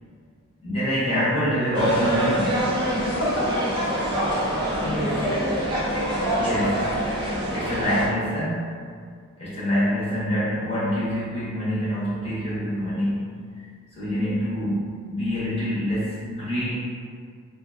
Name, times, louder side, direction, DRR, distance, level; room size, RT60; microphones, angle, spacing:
voice 1, 0.6-2.7 4.8-5.1 6.3-7.0 7.5-8.9 9.4-13.7 13.9-16.7, equal, 25° left, -10 dB, 0.6 m, -26 dB
sound 1, 1.7-8.1, right 1 dB, 20° right, 0.4 m, -25 dB
voice 2, 2.9-4.6 4.8-5.4 6.2-6.6 14.0-14.4, equal, 80° left, -5 dB, 0.6 m, -31 dB
2.4 x 2.2 x 2.5 m, 2.1 s
head